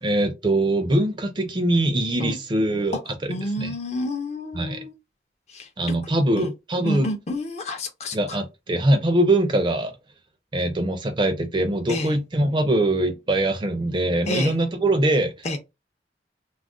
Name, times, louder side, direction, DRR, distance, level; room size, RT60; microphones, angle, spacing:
voice 1, 0.0-3.8 4.5-4.8 5.8-7.1 8.1-9.9 10.5-15.6, right 1 dB, 25° right, 0.4 m, -23 dB
voice 2, 3.3-4.9 5.5-5.9 6.4-6.5 6.8-8.4 11.9-12.1 14.3-14.6 15.4-15.6, left 1 dB, 40° left, 0.5 m, -29 dB
2.4 x 2.1 x 3.5 m
head